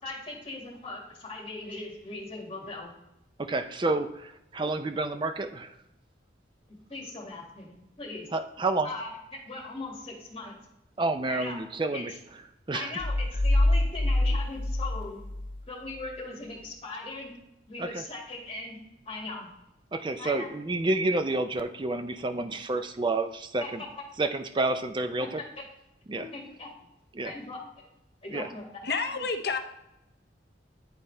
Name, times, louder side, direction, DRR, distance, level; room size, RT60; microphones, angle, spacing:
voice 1, 0.0-2.9 6.9-8.3 8.8-9.1 9.5-10.5 11.3-11.6 11.9-12.0 12.7-15.2 15.7-17.4 17.7-18.8 19.1-19.5 20.2-20.5 23.6-23.9 25.2-25.4 26.1-26.7 27.2-27.9 28.2-28.7, left 3 dB, 30° left, -3 dB, 2.1 m, -39 dB
voice 2, 3.5-5.7 8.3-8.9 11.0-12.1 12.7-12.9 17.8-18.0 19.9-23.8 24.2-25.4 26.1-26.3 27.1-27.3 28.3-28.5, right 2 dB, 25° right, 8 dB, 0.4 m, -29 dB
sound 1, 13.0-15.6, left 1 dB, 90° left, 1.2 m, -25 dB
voice 3, 28.8-29.6, left 4 dB, 60° left, 6 dB, 0.7 m, -29 dB
10.5 x 4.1 x 3.3 m, 0.85 s
head